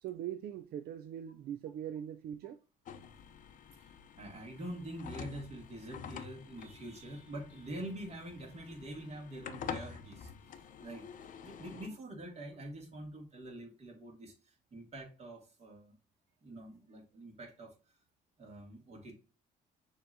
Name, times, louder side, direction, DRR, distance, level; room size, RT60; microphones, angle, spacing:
voice 1, 0.0-2.6 11.7-11.8, right 10 dB, 65° right, 0.4 m, -41 dB
sound 1, 2.9-11.9, left 7 dB, 50° left, 0.6 m, -48 dB
voice 2, 3.8-16.0 16.4-17.7 18.4-19.1, right 1 dB, 40° right, 2.0 m, -46 dB
6.5 x 2.9 x 2.6 m
cardioid pair, 110°, 17 cm